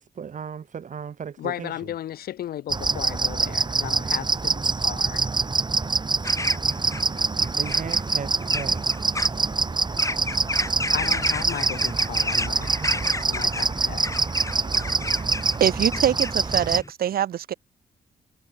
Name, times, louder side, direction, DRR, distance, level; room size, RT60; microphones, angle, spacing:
voice 1, 0.0-1.7 7.4-8.9 14.6-15.6, right 7 dB, 55° right, 1.5 m, -37 dB
voice 2, 1.4-5.3 10.9-14.1, left 12 dB, 85° left, 2.8 m, -35 dB
sound 1, 2.7-16.8, right 4 dB, 30° right, 1.2 m, -25 dB
sound 2, 6.2-16.9, left 2 dB, 20° left, 4.3 m, -33 dB
voice 3, 15.6-17.5, right 10 dB, 80° right, 5.9 m, -24 dB
cardioid pair, 60°, 15 cm